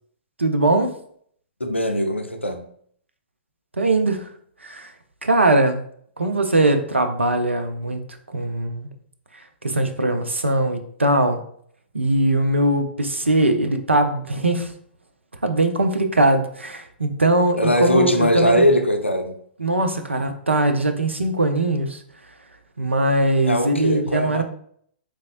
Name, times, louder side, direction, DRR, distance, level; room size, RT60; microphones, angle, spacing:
voice 1, 0.4-0.9 3.8-4.3 4.6-4.9 5.2-5.8 6.2-8.9 9.6-11.4 11.9-14.7 15.4-18.6 19.6-22.0 22.8-24.4, right 2 dB, 85° right, 0.4 m, -21 dB
voice 2, 1.6-2.6 17.6-19.3 23.5-24.4, equal, 90° left, 0.4 m, -20 dB
3.5 x 3.0 x 2.5 m
figure-of-eight pair, 115°, 6 cm